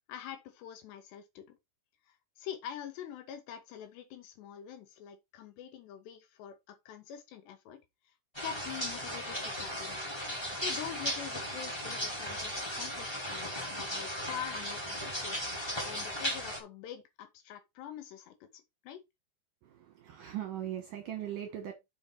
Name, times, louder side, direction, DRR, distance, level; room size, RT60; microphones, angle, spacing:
voice 1, 0.1-1.6 2.1-8.1 8.4-10.0 10.5-15.4 15.8-19.0, left 9 dB, 75° left, 3.4 m, -45 dB
sound 1, 8.3-16.6, equal, 10° left, 1.3 m, -36 dB
voice 2, 19.6-21.7, right 11 dB, 70° right, 2.2 m, -39 dB
7.5 x 5.1 x 4.5 m
omnidirectional pair, 5.1 m